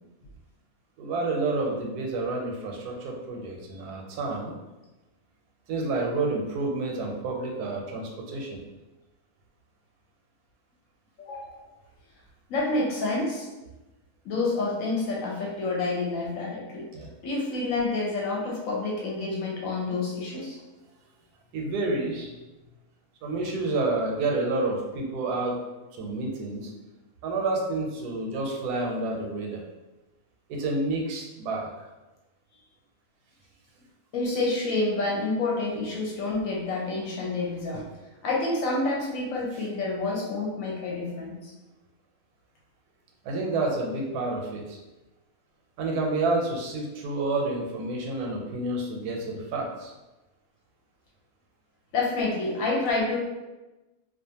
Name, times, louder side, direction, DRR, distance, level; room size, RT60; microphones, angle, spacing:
voice 1, 1.0-4.5 5.7-8.6 16.9-17.1 21.5-22.3 23.2-25.6 25.9-26.7 27.2-29.6 30.5-31.7 43.2-44.8 45.8-49.9, right 2 dB, 80° right, 0 dB, 1.1 m, -29 dB
voice 2, 11.2-11.6 12.5-13.5 14.2-16.9 17.2-20.6 34.1-37.8 38.2-41.5 51.9-53.2, left 3 dB, 65° left, -3 dB, 0.9 m, -28 dB
2.4 x 2.4 x 2.7 m, 1.1 s
omnidirectional pair, 1.6 m